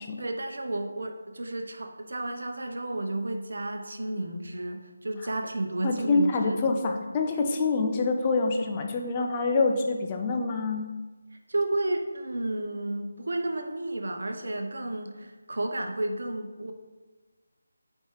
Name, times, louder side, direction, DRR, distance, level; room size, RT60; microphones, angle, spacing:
voice 1, 0.2-6.8 11.3-16.7, right 2 dB, 65° right, 5 dB, 0.8 m, -32 dB
voice 2, 5.8-10.9, left 3 dB, 25° left, 3 dB, 0.6 m, -26 dB
7.0 x 4.8 x 3.0 m, 1.3 s
figure-of-eight pair, 160°, 0 cm